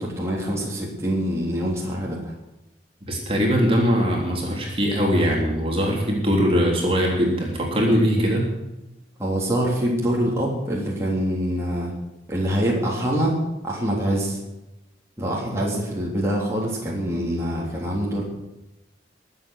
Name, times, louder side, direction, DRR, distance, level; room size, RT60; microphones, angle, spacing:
voice 1, 0.0-2.3 8.1-8.2 9.2-11.9 12.3-13.4 13.6-14.4 15.2-18.2, equal, 15° right, -4 dB, 3.2 m, -25 dB
voice 2, 3.1-8.5, equal, 30° right, -1 dB, 3.4 m, -21 dB
22.0 x 8.2 x 6.5 m, 0.97 s
head